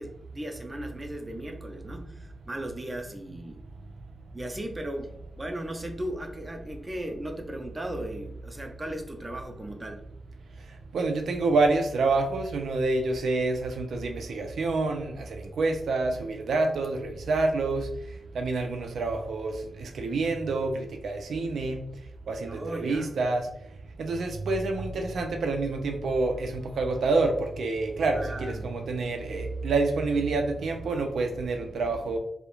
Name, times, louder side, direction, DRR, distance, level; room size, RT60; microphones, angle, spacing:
voice 1, 0.0-3.6 4.3-5.1 5.4-10.0 22.4-23.2 28.1-28.7, right 1 dB, 20° right, 4 dB, 0.4 m, -37 dB
voice 2, 10.9-17.9 18.3-21.8 22.3-23.5 24.0-32.2, right 3 dB, 85° right, 4 dB, 0.4 m, -27 dB
2.4 x 2.0 x 2.9 m, 0.76 s
wide cardioid pair, 135°, 0 cm